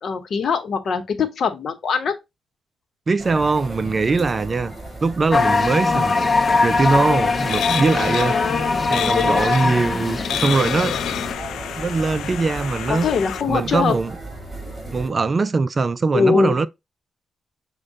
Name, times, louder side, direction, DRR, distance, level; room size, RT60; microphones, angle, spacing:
voice 1, 0.0-2.2 8.2-9.5 12.9-13.9 16.1-16.6, left 5 dB, 65° left, 0.8 m, -22 dB
voice 2, 3.1-4.7 5.0-6.3 6.6-8.4 8.9-11.0 11.8-13.1 13.5-14.1 14.9-16.7, right 4 dB, 40° right, 0.4 m, -21 dB
sound 1, 3.2-15.1, right 2 dB, 5° right, 2.6 m, -36 dB
sound 2, 5.3-11.3, left 3 dB, 40° left, 0.5 m, -21 dB
sound 3, 6.7-13.4, left 9 dB, 90° left, 0.3 m, -30 dB
6.2 x 2.2 x 3.8 m
cardioid pair, 70°, 0 cm